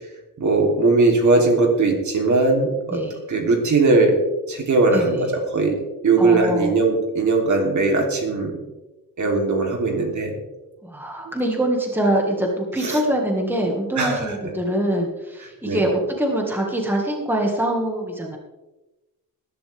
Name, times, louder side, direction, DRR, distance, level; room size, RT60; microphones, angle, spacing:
voice 1, 0.4-3.0 3.3-4.2 4.5-5.8 6.0-8.6 9.2-10.3 12.8-13.0 14.0-14.3 15.6-15.8, right 3 dB, 55° right, 1 dB, 3.2 m, -19 dB
voice 2, 4.9-5.3 6.2-6.8 10.8-18.4, right 1 dB, 5° right, 0 dB, 1.8 m, -24 dB
20.5 x 11.0 x 3.5 m, 1.0 s
wide cardioid pair, 170°, 36 cm